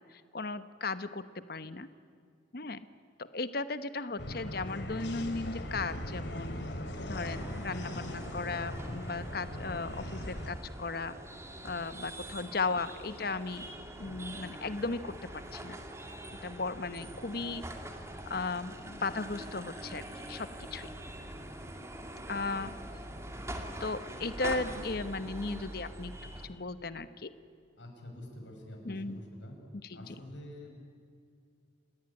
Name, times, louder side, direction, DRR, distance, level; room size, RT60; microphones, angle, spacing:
voice 1, 0.1-1.9 2.5-2.8 3.3-6.7 7.0-11.1 11.6-13.6 14.0-15.7 16.4-17.6 18.3-20.9 22.3-22.7 23.8-27.3 28.8-29.2, left 3 dB, 55° left, 12 dB, 1.0 m, -36 dB
sound 1, 4.2-10.5, equal, 70° left, 2.9 m, -39 dB
sound 2, 7.1-26.5, right 1 dB, 15° right, 2.2 m, -44 dB
voice 2, 27.8-29.6 29.9-30.7, left 1 dB, 85° left, 1 dB, 6.3 m, -47 dB
30.0 x 17.5 x 9.8 m, 2.3 s
head